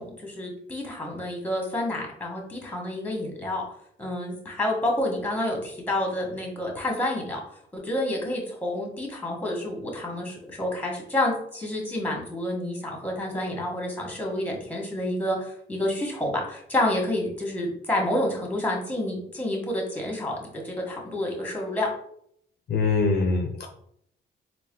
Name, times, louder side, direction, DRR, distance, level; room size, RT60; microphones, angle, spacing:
voice 1, 0.0-3.6 4.0-7.4 7.7-21.9, left 1 dB, 10° left, 0 dB, 1.4 m, -29 dB
voice 2, 22.7-23.7, left 4 dB, 55° left, 3 dB, 0.5 m, -23 dB
4.1 x 2.2 x 3.7 m, 0.69 s
cardioid pair, 90°, 20 cm